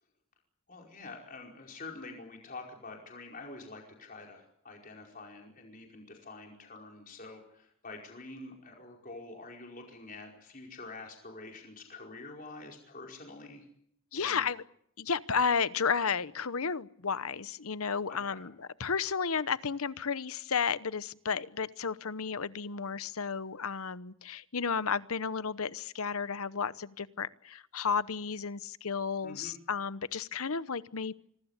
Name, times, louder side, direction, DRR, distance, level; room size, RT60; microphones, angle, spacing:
voice 1, 0.7-13.6 14.1-14.5 18.1-18.4 29.2-29.6, left 3 dB, 40° left, 1 dB, 5.0 m, -47 dB
voice 2, 14.1-14.6 15.0-31.1, left 6 dB, 75° left, 16 dB, 0.9 m, -32 dB
26.0 x 20.0 x 8.3 m, 0.69 s
head